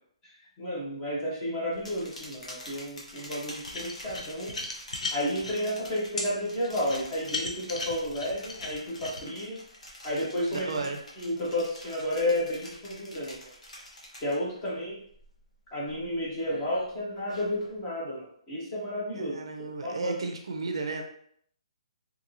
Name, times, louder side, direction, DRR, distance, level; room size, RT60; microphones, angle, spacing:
voice 1, 0.6-4.5 5.1-9.6 10.0-10.7 11.2-13.4 14.2-15.0 15.7-19.3 19.8-20.1, left 1 dB, 10° left, -6 dB, 0.5 m, -31 dB
sound 1, 1.7-14.7 15.0-15.5 15.9-17.8, left 1 dB, 90° left, 1.0 m, -47 dB
sound 2, 3.7-5.6 6.2-6.3 6.8-9.2, left 3 dB, 70° left, 0.6 m, -35 dB
voice 2, 10.5-11.0 19.1-21.0, right 3 dB, 50° right, 4 dB, 0.4 m, -33 dB
2.9 x 2.6 x 2.5 m, 0.65 s
hypercardioid pair, 180°, 4 cm